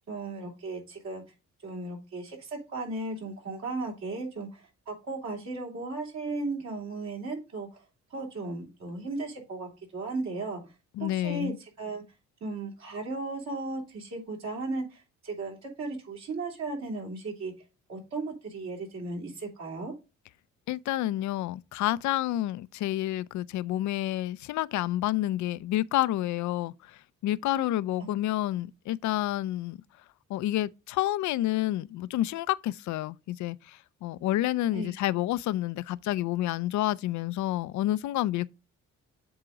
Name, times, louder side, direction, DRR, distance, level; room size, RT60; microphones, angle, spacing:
voice 1, 0.1-1.2 1.6-7.8 8.1-10.6 11.0-12.0 12.4-17.5 17.9-19.9 27.5-27.7 34.7-34.9, right 3 dB, 60° right, 3.2 m, -36 dB
voice 2, 11.0-11.6 20.7-29.8 30.3-38.5, left 14 dB, 70° left, 0.5 m, -29 dB
7.8 x 3.7 x 5.0 m
cardioid pair, 90°, 30 cm